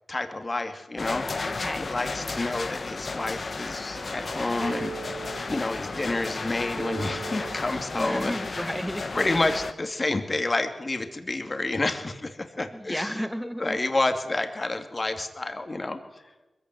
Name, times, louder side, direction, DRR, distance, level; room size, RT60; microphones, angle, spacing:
voice 1, 0.1-1.3 1.8-8.6 9.1-13.1 13.6-16.0, left 2 dB, 40° left, 6 dB, 2.6 m, -29 dB
sound 1, 1.0-9.7, left 3 dB, 60° left, 1.5 m, -34 dB
voice 2, 1.5-1.9 7.9-9.2 12.7-13.8, equal, ahead, 9 dB, 1.8 m, -33 dB
sound 2, 3.9-6.5 6.8-8.9 9.3-9.6, right 6 dB, 70° right, 1.1 m, -41 dB
21.5 x 15.5 x 9.4 m, 1.1 s
cardioid pair, 40°, 0 cm